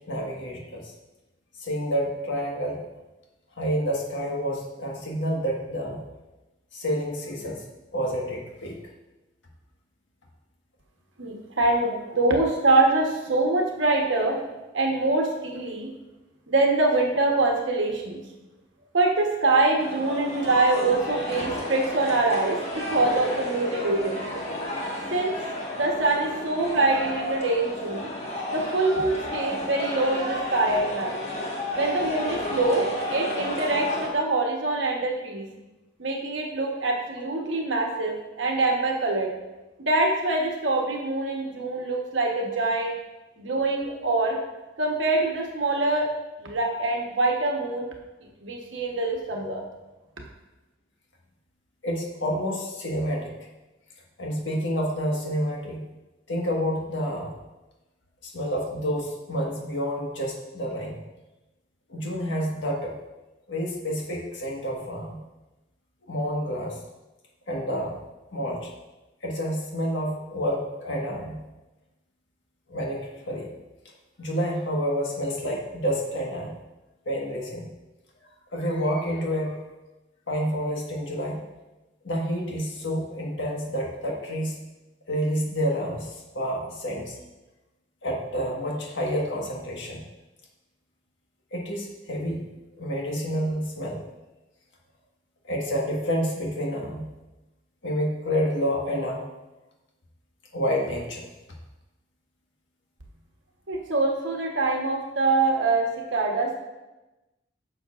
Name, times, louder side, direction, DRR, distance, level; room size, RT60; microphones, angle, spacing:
voice 1, 0.1-0.9 1.6-2.8 3.6-6.0 6.7-7.6 7.9-8.8 11.8-12.0 51.8-53.3 54.2-55.9 56.3-57.3 58.2-61.0 61.9-62.9 63.5-65.2 66.1-66.8 67.5-67.9 68.3-68.7 69.2-71.4 72.7-73.5 74.2-76.5 77.0-77.7 78.5-79.6 80.3-81.4 82.0-84.6 85.1-87.2 88.0-90.0 91.5-92.4 92.8-94.0 95.4-97.1 97.8-99.3 100.5-101.2, equal, 75° left, -1 dB, 1.5 m, -29 dB
voice 2, 11.2-14.5 14.7-15.9 16.5-18.2 18.9-24.3 24.7-24.8 25.1-25.3 25.8-28.1 28.5-31.2 31.7-35.4 36.0-39.3 39.8-42.9 43.4-44.4 44.8-46.1 46.4-47.9 48.4-49.6 103.7-106.5, right 2 dB, 75° right, 1 dB, 1.1 m, -24 dB
sound 1, 19.8-34.1, left 1 dB, 35° left, 1.5 m, -32 dB
10.5 x 6.4 x 2.5 m, 1.1 s
head